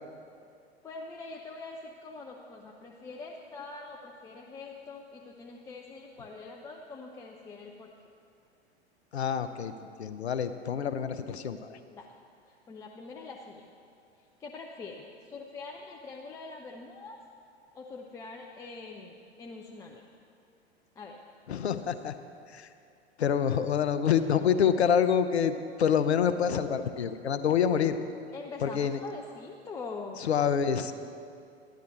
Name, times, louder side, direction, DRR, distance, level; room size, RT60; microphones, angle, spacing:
voice 1, 0.8-7.9 11.9-12.1 12.5-13.7 14.4-17.2 17.7-20.0 21.0-21.2 28.3-30.3, left 3 dB, 10° left, 0 dB, 0.4 m, -44 dB
voice 2, 9.1-9.7 10.0-11.8 21.5-22.1 22.5-22.7 23.2-28.0 28.6-29.0 30.2-30.9, left 8 dB, 70° left, 10 dB, 0.7 m, -27 dB
12.5 x 10.5 x 4.0 m, 2.5 s
figure-of-eight pair, 95°, 33 cm